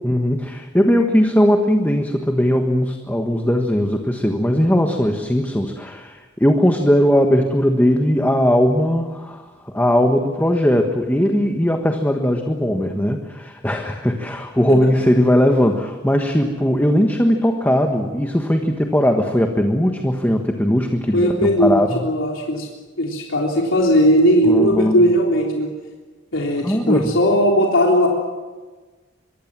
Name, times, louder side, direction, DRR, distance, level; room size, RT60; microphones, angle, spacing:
voice 1, 0.0-22.1 24.4-25.0 26.6-27.2, equal, 10° left, 3 dB, 1.4 m, -19 dB
voice 2, 21.1-22.7 23.0-25.7 26.3-28.1, equal, 80° left, -1 dB, 3.6 m, -17 dB
24.5 x 23.5 x 7.5 m, 1.3 s
head